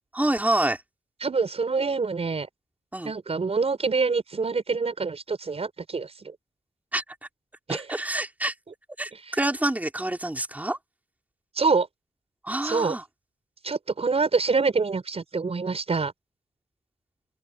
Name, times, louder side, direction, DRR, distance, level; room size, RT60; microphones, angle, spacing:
voice 1, 0.1-0.8 2.9-3.1 6.9-7.0 7.7-8.5 9.0-10.8 12.4-13.0, right 1 dB, 10° right, 4.3 m, -27 dB
voice 2, 1.2-2.5 3.0-6.1 7.7-7.8 11.6-11.9 12.6-12.9 13.6-16.1, right 4 dB, 45° right, 5.4 m, -25 dB
open air
cardioid pair, 90°, 14 cm